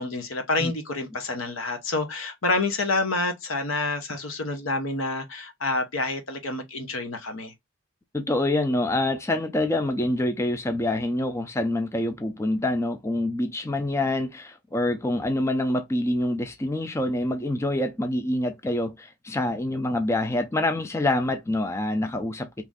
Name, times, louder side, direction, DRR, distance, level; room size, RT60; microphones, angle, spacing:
voice 1, 0.0-7.5, left 2 dB, 80° left, 0.8 m, -28 dB
voice 2, 8.1-22.7, left 1 dB, 15° left, 0.3 m, -26 dB
2.9 x 2.5 x 3.5 m
head